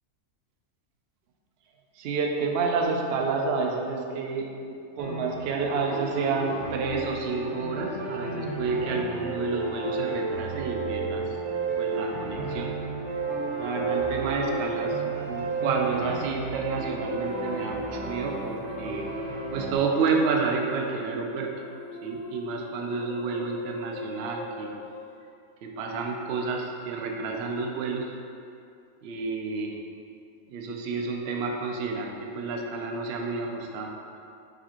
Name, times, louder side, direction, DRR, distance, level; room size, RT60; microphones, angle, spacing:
voice 1, 1.9-11.3 11.8-12.7 13.2-19.1 19.5-21.5 22.0-24.7 25.6-28.2 29.0-29.8 30.5-33.9, right 4 dB, 70° right, 1 dB, 0.6 m, -30 dB
sound 1, 5.0-19.8, right 4 dB, 85° right, 1.3 m, -32 dB
sound 2, 13.1-25.2, left 1 dB, 65° left, 0.9 m, -42 dB
4.8 x 3.3 x 2.9 m, 2.5 s
omnidirectional pair, 1.5 m